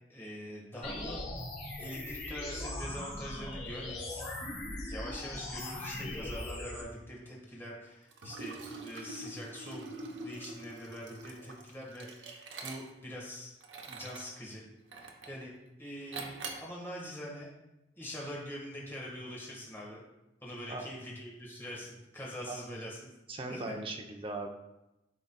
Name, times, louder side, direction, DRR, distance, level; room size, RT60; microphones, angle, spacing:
voice 1, 0.1-1.3 1.8-4.3 4.9-9.9 10.2-13.5 13.8-14.6 14.9-15.5 15.8-17.5 18.0-20.0 20.4-23.1 23.4-23.7, equal, 15° left, -4 dB, 1.5 m, -44 dB
sound 1, 0.8-6.8, left 1 dB, 40° left, 2.0 m, -40 dB
Liquid, 8.1-13.1 13.6-14.3 14.9-15.4 16.1-16.7, right 3 dB, 85° right, 0.8 m, -44 dB
voice 2, 23.3-24.5, right 2 dB, 30° right, 3 dB, 0.6 m, -38 dB
11.0 x 3.9 x 2.2 m, 0.94 s
head